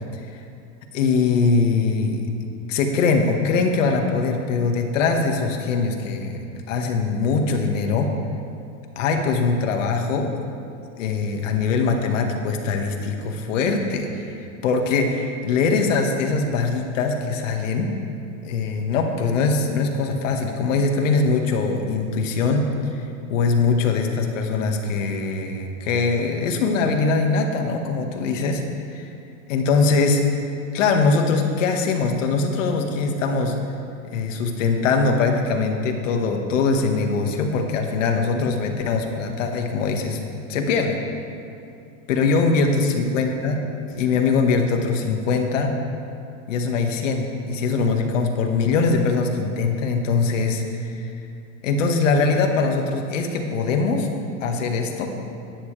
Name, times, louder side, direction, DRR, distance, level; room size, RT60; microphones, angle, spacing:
voice 1, 0.9-2.2 2.7-6.4 6.7-8.1 9.0-10.3 11.0-17.9 18.4-23.0 23.3-28.6 28.9-29.1 29.5-30.2 30.7-33.6 34.0-40.2 40.5-41.0 42.1-43.6 44.0-45.8 46.5-51.1 51.6-54.1 54.4-55.1, left 4 dB, 75° left, 3 dB, 1.8 m, -22 dB
23.0 x 10.0 x 3.4 m, 2.6 s
supercardioid pair, 170°, 38 cm